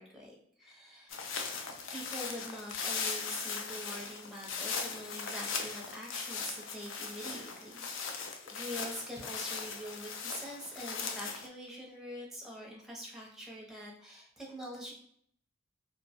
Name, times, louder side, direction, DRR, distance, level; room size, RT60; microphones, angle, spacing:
voice 1, 0.0-1.3 1.9-14.9, equal, ahead, -2 dB, 0.6 m, -45 dB
sound 1, 1.1-11.5, left 5 dB, 70° left, 0.4 m, -39 dB
2.4 x 2.1 x 2.8 m, 0.66 s
head